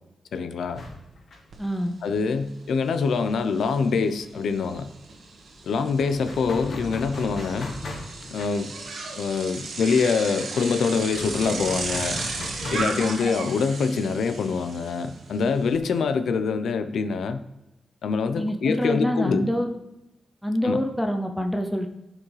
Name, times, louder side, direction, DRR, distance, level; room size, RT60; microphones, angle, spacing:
voice 1, 0.3-0.8 2.0-4.9 5.6-7.8 8.3-8.7 9.2-12.2 12.7-17.4 18.0-19.5 20.6-20.9, left 5 dB, 90° left, 10 dB, 0.6 m, -25 dB
sound 1, 0.7-4.1 4.3-4.5 4.7-15.7, left 2 dB, 55° left, 1.3 m, -40 dB
Bicycle, 1.5-1.6 2.0-15.8, right 3 dB, 70° right, 1.3 m, -36 dB
voice 2, 1.6-1.9 18.3-19.7 20.4-21.9, equal, 5° left, 4 dB, 0.5 m, -26 dB
15.0 x 5.0 x 3.2 m, 0.96 s
wide cardioid pair, 165°, 0 cm